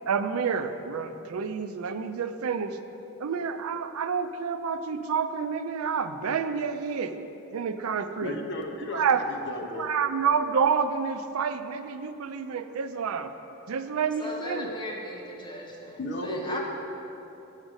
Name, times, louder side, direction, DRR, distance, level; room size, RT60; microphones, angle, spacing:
voice 1, 0.1-2.8 3.2-7.2 7.5-8.4 8.9-9.2 9.8-13.3 13.7-14.7, right 6 dB, 90° right, 10 dB, 0.4 m, -28 dB
voice 2, 8.2-9.9 16.0-16.6, left 1 dB, 55° left, 2 dB, 0.8 m, -34 dB
voice 3, 14.2-16.6, left 1 dB, 20° left, -3 dB, 1.0 m, -38 dB
7.2 x 5.2 x 6.3 m, 3.0 s
head